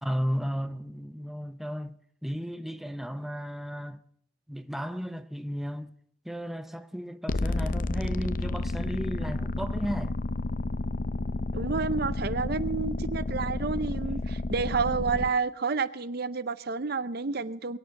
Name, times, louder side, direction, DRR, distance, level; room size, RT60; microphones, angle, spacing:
voice 1, 0.0-4.0 4.5-5.9 6.2-10.2, equal, ahead, 0.6 m, -34 dB
sound 1, 7.3-15.3, left 2 dB, 45° left, 0.6 m, -31 dB
voice 2, 11.5-17.8, right 4 dB, 50° right, 0.6 m, -30 dB
22.0 x 9.0 x 7.1 m
head